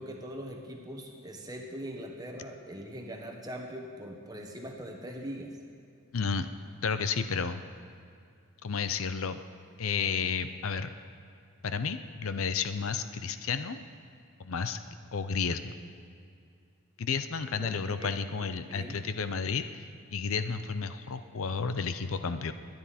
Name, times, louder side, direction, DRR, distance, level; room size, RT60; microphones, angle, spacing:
voice 1, 0.0-5.6 17.6-18.2 18.7-19.0, equal, 15° right, 1 dB, 1.3 m, -41 dB
voice 2, 6.1-6.5 6.8-7.6 8.6-9.4 9.8-10.9 11.6-13.8 14.4-14.8 15.1-15.7 17.0-19.8 20.1-22.5, left 5 dB, 70° left, 10 dB, 0.6 m, -32 dB
21.5 x 9.5 x 4.3 m, 2.4 s
head